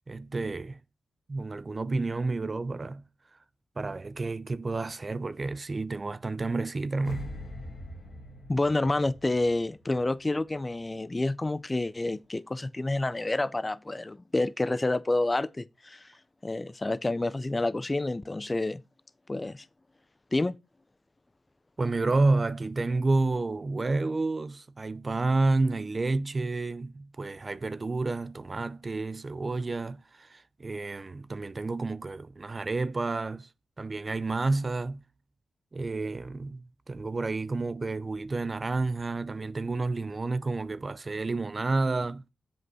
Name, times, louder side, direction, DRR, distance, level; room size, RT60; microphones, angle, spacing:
voice 1, 0.1-0.8 1.3-3.0 3.8-7.3 21.8-33.5 33.8-35.0 35.7-42.2, right 3 dB, 35° right, 0.5 m, -30 dB
sound 1, 7.0-10.2 10.5-10.8, equal, 55° left, 1.9 m, -43 dB
voice 2, 8.5-16.1 16.4-18.8 19.3-19.7 20.3-20.6, left 2 dB, 25° left, 0.4 m, -28 dB
7.8 x 5.3 x 5.5 m
cardioid pair, 85°, 0 cm